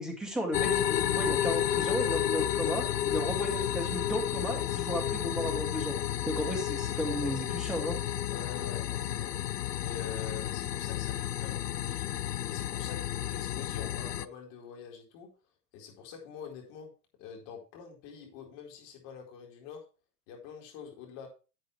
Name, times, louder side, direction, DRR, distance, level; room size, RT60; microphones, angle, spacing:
voice 1, 0.0-5.9 6.3-8.0, equal, ahead, 0 dB, 2.3 m, -34 dB
sound 1, 0.5-14.3, left 11 dB, 80° left, 0.7 m, -31 dB
voice 2, 7.1-7.4 8.3-9.4 9.8-15.3 15.7-16.9 17.2-19.9 20.3-21.3, left 7 dB, 40° left, 1 dB, 4.3 m, -46 dB
11.5 x 7.8 x 3.2 m, 0.32 s
hypercardioid pair, 115°, 47 cm